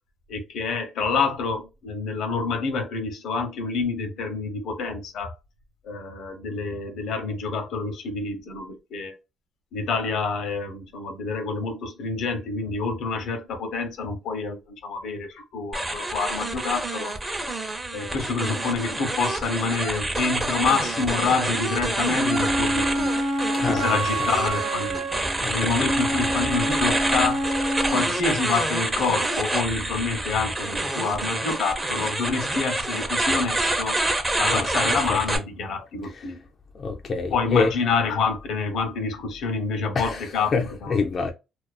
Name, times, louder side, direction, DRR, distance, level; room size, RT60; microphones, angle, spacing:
voice 1, 0.3-5.3 5.8-9.1 9.7-17.1 17.9-23.2 23.7-25.1 25.5-27.5 27.9-34.0 34.4-36.4 37.3-40.5 40.8-41.0, left 4 dB, 80° left, 0.7 m, -27 dB
sound 1, 15.7-35.4, right 2 dB, 20° right, 0.6 m, -27 dB
Wind instrument woodwind instrument, 22.1-28.1, right 1 dB, 90° right, 1.1 m, -27 dB
voice 2, 23.5-24.3 25.4-25.9 34.5-35.2 36.0-36.3 36.7-37.7 39.9-41.3, left 4 dB, 50° left, 0.3 m, -27 dB
2.4 x 2.3 x 2.3 m
cardioid pair, 90°, 0 cm